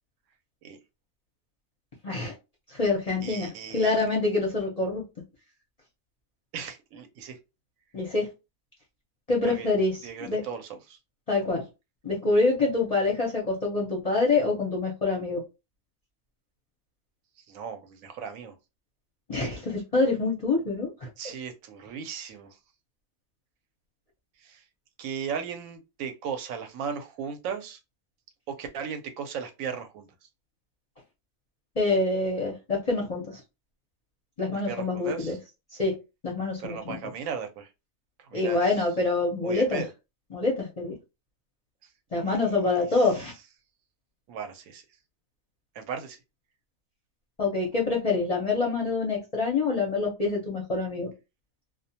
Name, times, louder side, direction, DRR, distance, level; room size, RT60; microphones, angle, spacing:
voice 1, 2.0-2.3 2.7-5.0 7.9-8.3 9.3-10.4 11.3-11.6 12.0-15.4 19.3-21.1 31.8-33.4 34.4-35.4 35.8-35.9 36.2-37.0 38.3-39.8 40.3-40.9 42.1-43.3 47.4-51.1, left 3 dB, 40° left, 0.6 m, -26 dB
voice 2, 3.2-4.0 6.5-7.4 9.4-9.7 10.0-11.0 17.5-18.6 21.2-22.6 24.4-24.6 25.0-27.8 28.5-30.1 34.5-35.4 36.6-37.7 38.3-38.9 39.4-39.9 42.2-42.5 42.9-43.1 44.3-44.8 45.7-46.2, right 7 dB, 75° right, 1.0 m, -37 dB
2.3 x 2.1 x 2.7 m
omnidirectional pair, 1.4 m